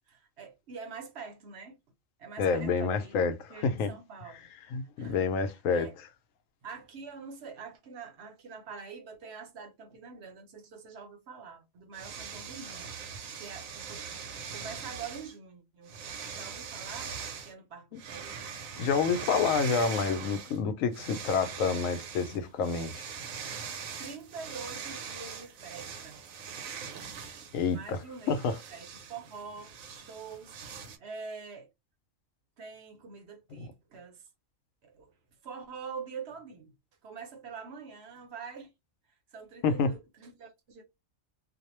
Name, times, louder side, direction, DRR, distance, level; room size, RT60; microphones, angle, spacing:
voice 1, 0.1-1.8 2.2-3.2 3.5-4.5 4.8-5.3 5.7-5.9 6.6-12.9 13.4-15.9 16.3-17.2 17.4-18.5 24.0-26.2 27.7-28.4 28.7-31.7 32.6-34.3 34.8-35.1 35.4-36.8 37.0-38.7 39.3-40.8, right 5 dB, 60° right, 0.8 m, -45 dB
voice 2, 2.4-3.9 4.7-5.9 18.8-23.0 27.5-28.0 28.3-28.6 33.6-33.7 39.6-39.9, left 5 dB, 85° left, 1.0 m, -28 dB
sound 1, 11.9-15.3 15.9-17.5 18.0-20.6 20.9-31.0, right 6 dB, 90° right, 1.1 m, -41 dB
2.6 x 2.0 x 2.9 m
omnidirectional pair, 1.4 m